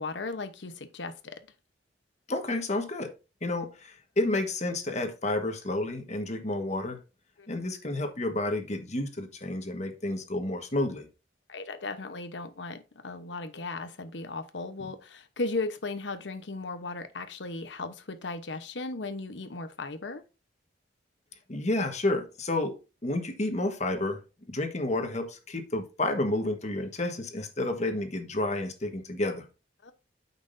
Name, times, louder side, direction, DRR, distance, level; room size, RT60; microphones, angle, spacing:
voice 1, 0.0-1.4 7.4-7.5 11.5-20.2 29.8-29.9, left 3 dB, 85° left, 1.0 m, -36 dB
voice 2, 2.3-3.1 3.4-7.0 7.5-11.1 21.5-22.7 23.0-24.2 24.5-29.4, left 2 dB, 40° left, 1.4 m, -30 dB
8.9 x 6.1 x 2.6 m
head